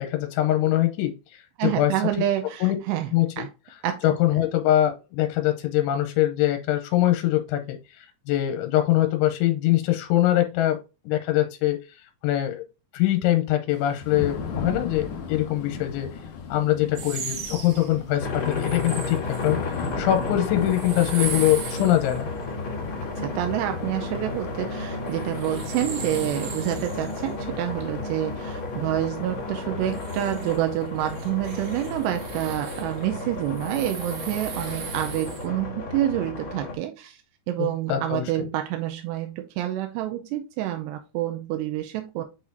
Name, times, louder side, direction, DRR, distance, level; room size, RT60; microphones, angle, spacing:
voice 1, 0.0-1.9 2.6-2.8 3.1-3.4 4.0-10.8 11.1-11.8 12.2-12.6 12.9-16.1 16.5-22.3 37.6-38.4, left 13 dB, 90° left, 6 dB, 3.0 m, -23 dB
voice 2, 1.6-3.5 3.8-4.0 23.2-37.2 37.5-42.2, right 13 dB, 85° right, 5 dB, 2.5 m, -28 dB
Thunder / Rain, 13.7-29.5, left 5 dB, 70° left, 2.0 m, -38 dB
sound 1, 17.0-35.5, right 6 dB, 65° right, 2.4 m, -40 dB
sound 2, 18.2-36.8, left 3 dB, 45° left, 1.7 m, -33 dB
8.6 x 4.2 x 2.6 m, 0.29 s
omnidirectional pair, 5.4 m